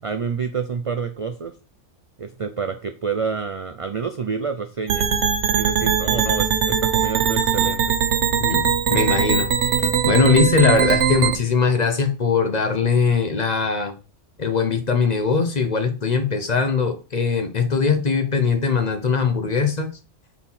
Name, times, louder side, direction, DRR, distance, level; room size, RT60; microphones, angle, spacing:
voice 1, 0.0-1.5 2.2-5.0 5.5-7.9, right 5 dB, 55° right, 7 dB, 0.3 m, -28 dB
sound 1, 4.9-11.4, right 7 dB, 75° right, 1.1 m, -20 dB
voice 2, 8.4-9.5 10.0-13.9 14.4-19.9, left 5 dB, 40° left, 7 dB, 0.8 m, -20 dB
4.2 x 4.1 x 5.5 m, 0.33 s
omnidirectional pair, 1.2 m